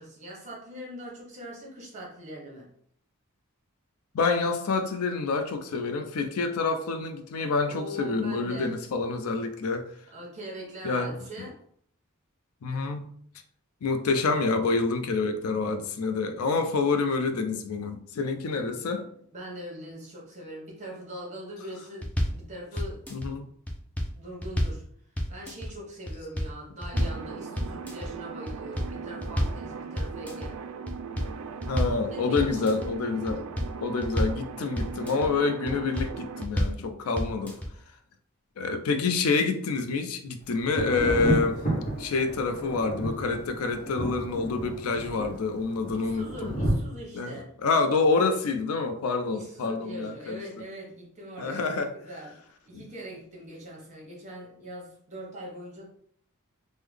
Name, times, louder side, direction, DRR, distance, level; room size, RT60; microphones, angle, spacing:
voice 1, 0.0-2.7 7.6-8.7 10.1-11.6 18.5-23.0 24.1-24.8 25.3-30.6 32.1-32.7 46.0-47.5 49.3-52.4 52.6-55.9, equal, 35° right, -2 dB, 1.0 m, -42 dB
voice 2, 4.1-9.9 10.8-11.1 12.6-13.1 13.8-19.0 23.1-23.5 31.7-33.5 33.8-37.6 38.6-41.6 42.0-46.6 47.1-47.4 47.6-50.4 51.4-51.9 52.7-52.8, left 4 dB, 85° left, 8 dB, 0.4 m, -27 dB
sound 1, 22.0-22.4 22.8-23.3 23.7-24.8 25.2-25.7 26.1-26.5 26.8-27.2 27.6-28.1 28.5-29.6 30.0-30.5 30.9-32.0 32.4-32.9 33.3-34.4 34.8-35.3 35.7-36.1 36.4-36.8 37.2-37.7, equal, 5° left, 0.4 m, -29 dB
sound 2, 26.9-36.5, right 5 dB, 80° right, 0.3 m, -39 dB
Thunder, 40.6-46.7, right 1 dB, 35° left, 0.9 m, -31 dB
3.6 x 2.1 x 3.2 m, 0.64 s
head